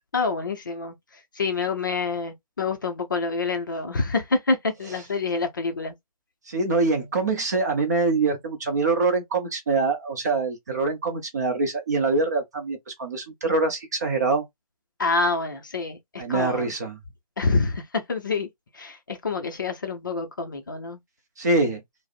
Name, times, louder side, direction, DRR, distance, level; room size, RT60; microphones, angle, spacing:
voice 1, 0.1-5.9 15.0-16.7 17.4-18.5 18.7-21.0, left 3 dB, 35° left, 0.5 m, -27 dB
voice 2, 6.5-14.4 16.2-17.0 21.4-21.8, right 3 dB, 30° right, 0.6 m, -24 dB
4.7 x 2.0 x 2.4 m
figure-of-eight pair, 155°, 19 cm